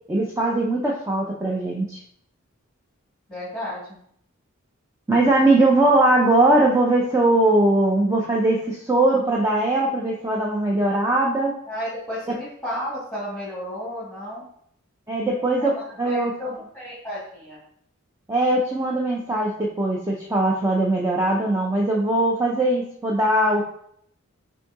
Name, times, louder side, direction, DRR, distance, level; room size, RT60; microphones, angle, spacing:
voice 1, 0.1-2.0 5.1-11.5 15.1-16.3 18.3-23.6, right 2 dB, 15° right, -2 dB, 0.5 m, -20 dB
voice 2, 3.3-4.0 11.7-14.5 15.6-17.6, equal, ahead, -10 dB, 1.6 m, -33 dB
5.6 x 2.7 x 3.5 m, 0.68 s
head